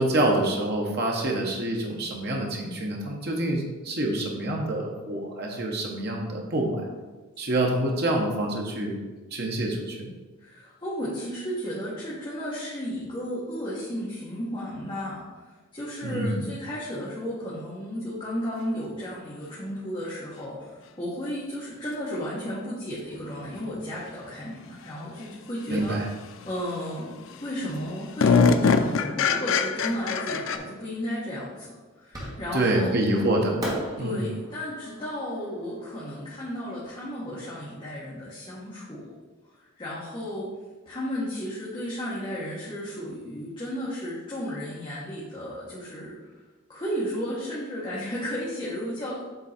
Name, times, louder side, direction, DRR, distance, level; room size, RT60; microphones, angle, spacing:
voice 1, 0.0-6.8 7.4-9.0 9.3-10.1 16.0-16.4 25.7-26.1 32.5-33.6 34.0-34.3, right 1 dB, 50° right, 0 dB, 1.0 m, -26 dB
voice 2, 10.4-26.1 26.4-27.1 27.4-33.1 34.0-39.1 39.6-40.5 40.8-46.3 46.7-49.2, equal, 25° left, -8 dB, 1.4 m, -34 dB
sound 1, 22.9-23.0 25.8-25.9 26.4-26.8 27.3-27.4 27.6-30.6, left 5 dB, 60° left, 0.4 m, -23 dB
Fireworks, 32.1-32.8 33.6-36.7, equal, 15° right, 1.5 m, -37 dB
7.9 x 3.8 x 4.3 m, 1.3 s
head